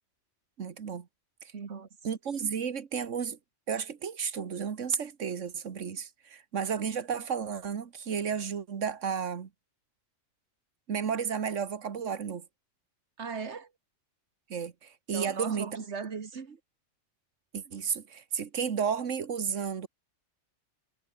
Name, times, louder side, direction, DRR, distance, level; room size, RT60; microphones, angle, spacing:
voice 1, 0.6-1.1 1.4-1.5 2.0-3.4 3.7-9.5 10.9-12.4 14.5-15.7 17.5-19.9, right 7 dB, 90° right, 1.7 m, -32 dB
voice 2, 1.5-1.9 13.2-13.7 15.1-16.6, right 5 dB, 65° right, 1.8 m, -38 dB
omnidirectional pair, 1.2 m